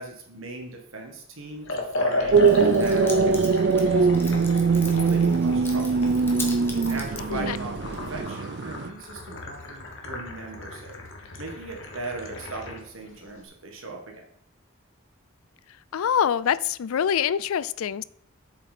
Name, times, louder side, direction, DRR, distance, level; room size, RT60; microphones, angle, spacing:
voice 1, 0.0-4.6 4.9-6.0 6.8-11.0 11.4-14.3, right 2 dB, 70° right, 1.8 m, -39 dB
Liquid, 1.6-12.9, left 2 dB, 65° left, 1.5 m, -34 dB
Keys jangling, 2.2-8.2, left 2 dB, 10° left, 1.1 m, -39 dB
sound 1, 2.3-8.9, right 5 dB, 50° right, 0.4 m, -22 dB
voice 2, 15.9-18.0, left 8 dB, 80° left, 0.4 m, -25 dB
8.0 x 7.1 x 4.3 m
head